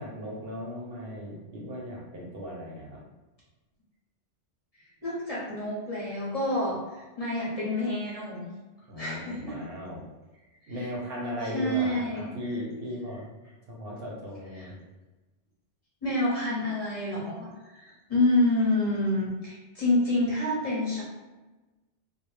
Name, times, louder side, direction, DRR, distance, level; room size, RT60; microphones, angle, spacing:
voice 1, 0.0-3.0 8.9-10.0 10.7-13.3 13.7-14.8, equal, 65° right, -3 dB, 0.8 m, -37 dB
voice 2, 5.0-8.5 9.0-9.6 10.6-10.9 11.4-12.5 14.5-14.7 16.0-21.0, left 1 dB, 40° left, -8 dB, 0.7 m, -28 dB
2.1 x 2.0 x 3.1 m, 1.1 s
omnidirectional pair, 1.2 m